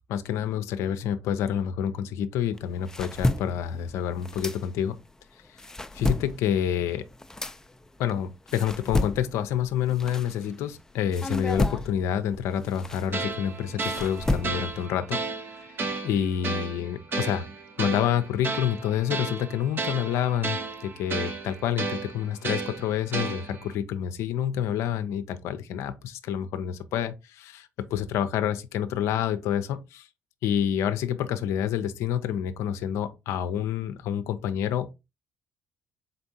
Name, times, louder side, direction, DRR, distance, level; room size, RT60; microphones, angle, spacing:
voice 1, 0.1-5.0 5.9-7.0 8.0-15.2 15.5-15.7 16.0-17.5 17.8-30.1 30.4-34.9, left 9 dB, 75° left, 0.5 m, -28 dB
sound 1, 2.5-5.1 5.4-10.7 11.1-14.9, left 1 dB, 10° left, 0.4 m, -32 dB
sound 2, 13.1-23.7, right 3 dB, 45° right, 0.7 m, -33 dB
4.0 x 3.4 x 2.7 m
hypercardioid pair, 60°, 5 cm